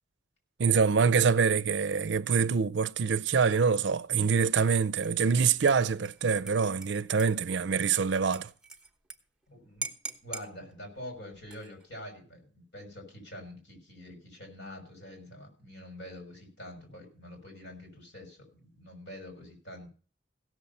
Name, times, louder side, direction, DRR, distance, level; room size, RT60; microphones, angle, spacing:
voice 1, 0.6-8.5, right 5 dB, 70° right, 0.5 m, -25 dB
Dishes pots and pans / Liquid, 5.0-5.3 5.7-9.2 9.4-9.5 9.8-10.5 11.4-11.9, right 3 dB, 5° right, 1.1 m, -42 dB
voice 2, 9.5-9.9 10.2-19.9, left 1 dB, 70° left, 6.0 m, -46 dB
16.5 x 7.2 x 5.4 m
head